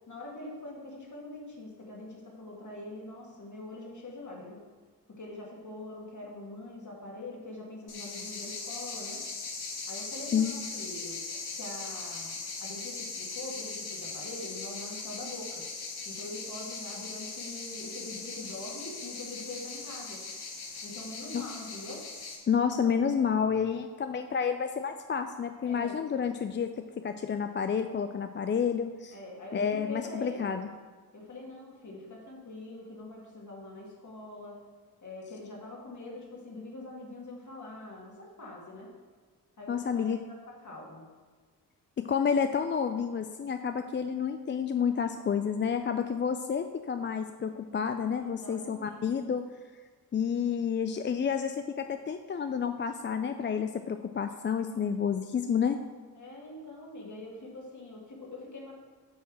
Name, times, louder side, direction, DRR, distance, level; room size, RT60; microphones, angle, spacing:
voice 1, 0.1-4.6 5.1-9.2 9.9-11.2 11.5-15.6 16.0-20.2 20.8-22.0 25.6-26.0 29.1-30.5 31.1-34.6 35.0-38.9 39.6-41.0 48.2-49.0 56.2-58.7, left 2 dB, 45° left, -2 dB, 2.4 m, -44 dB
sound 1, 7.9-22.4, left 4 dB, 70° left, 1.5 m, -39 dB
voice 2, 10.3-10.7 21.3-21.4 22.5-26.7 27.0-29.2 29.5-30.7 39.7-40.2 42.0-49.4 50.1-55.8, left 7 dB, 30° left, 8 dB, 0.4 m, -30 dB
8.5 x 3.5 x 6.4 m, 1.4 s
supercardioid pair, 55°, 39 cm